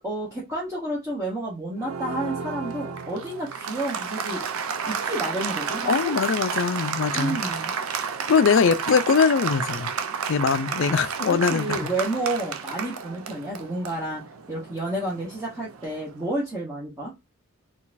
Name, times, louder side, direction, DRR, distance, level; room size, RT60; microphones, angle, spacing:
voice 1, 0.0-4.4 4.9-6.1 7.1-7.7 11.3-14.2 14.5-17.1, right 1 dB, 15° right, 0.9 m, -30 dB
Applause, 1.8-16.1, right 6 dB, 75° right, 0.5 m, -31 dB
voice 2, 5.9-7.4 8.3-9.9 10.3-11.9, left 5 dB, 60° left, 0.4 m, -22 dB
3.9 x 2.4 x 2.5 m
head